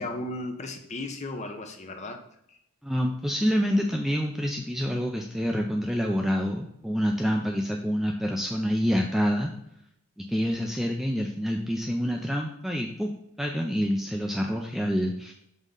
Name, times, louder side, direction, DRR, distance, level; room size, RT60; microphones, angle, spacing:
voice 1, 0.0-2.2 2.5-2.6, left 2 dB, 30° left, 4 dB, 0.7 m, -35 dB
voice 2, 2.8-9.5 10.3-13.1 13.4-15.3, equal, ahead, 1 dB, 0.4 m, -27 dB
5.4 x 3.6 x 5.3 m, 0.76 s
head